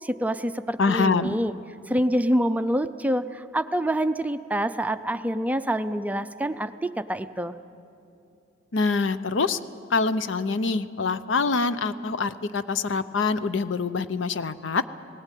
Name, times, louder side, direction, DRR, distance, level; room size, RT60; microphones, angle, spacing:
voice 1, 0.0-1.5 1.9-7.5, right 1 dB, 10° right, 11 dB, 0.4 m, -26 dB
voice 2, 0.8-1.4 8.7-9.6 9.9-14.8, left 4 dB, 75° left, 13 dB, 0.6 m, -25 dB
18.5 x 16.5 x 9.1 m, 2.6 s
head